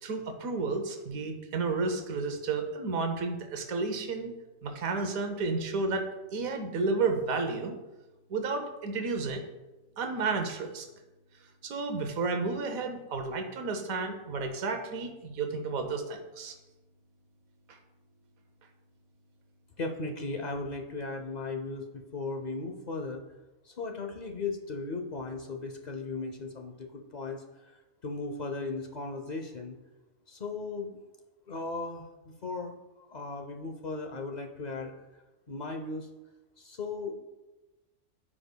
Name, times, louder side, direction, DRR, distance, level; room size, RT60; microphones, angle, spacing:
voice 1, 0.0-4.3 4.6-6.1 6.3-7.8 8.3-9.5 10.0-10.9 11.6-16.5 17.7-17.8, right 4 dB, 85° right, 5 dB, 1.3 m, -32 dB
voice 2, 19.8-23.2 23.6-29.8 30.3-31.0 31.5-32.7 33.1-34.9 35.5-36.1 36.6-37.1, left 3 dB, 55° left, 4 dB, 0.5 m, -37 dB
13.5 x 4.9 x 2.2 m, 1.1 s
omnidirectional pair, 1.4 m